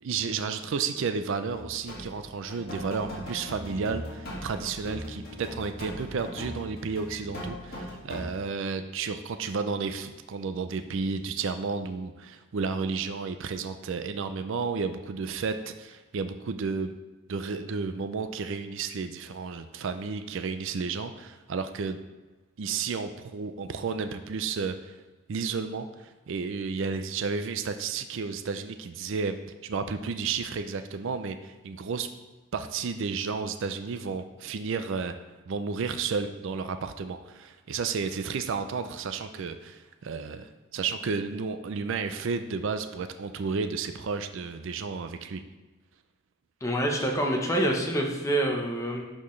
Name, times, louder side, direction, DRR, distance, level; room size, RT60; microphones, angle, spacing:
voice 1, 0.0-16.9 17.3-22.0 22.6-24.9 25.3-29.4 29.6-32.1 32.5-35.2 35.5-45.4, right 5 dB, 60° right, 9 dB, 0.4 m, -32 dB
sound 1, 1.5-2.2 2.5-8.2, left 1 dB, 45° left, 1.9 m, -39 dB
voice 2, 46.6-49.1, right 1 dB, 15° left, 1 dB, 0.8 m, -26 dB
11.0 x 4.3 x 3.2 m, 1.2 s
head